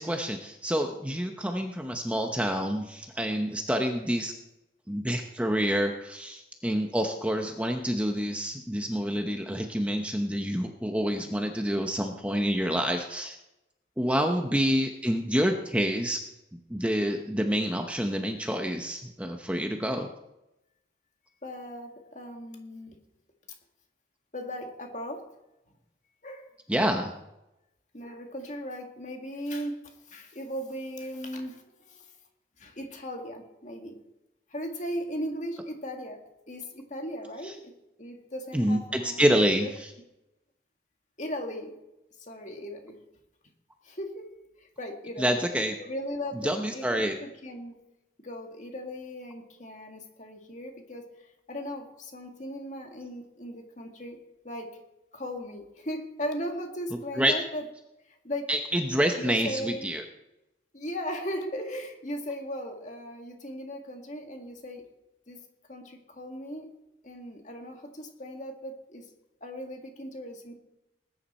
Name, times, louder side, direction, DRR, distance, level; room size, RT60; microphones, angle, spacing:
voice 1, 0.0-4.3 4.9-13.4 14.0-16.2 16.7-20.1 26.7-27.1 37.4-37.5 38.5-39.9 45.2-45.8 46.4-47.2 57.2-57.3 58.5-60.0, equal, 5° right, 4 dB, 0.8 m, -27 dB
voice 2, 21.4-23.0 24.3-25.2 26.2-26.5 27.9-32.2 32.6-34.0 34.5-36.2 36.5-37.7 38.0-39.3 39.6-39.7 41.2-41.7 42.2-43.0 43.8-44.2 44.6-45.3 45.8-47.7 48.2-51.0 51.5-54.2 54.4-54.7 55.1-57.6 58.2-58.5 59.2-59.9 60.7-64.8 65.3-65.4 65.7-66.7 67.0-69.1 69.4-70.6, equal, 40° left, 3 dB, 2.0 m, -37 dB
19.5 x 10.0 x 4.3 m, 0.91 s
head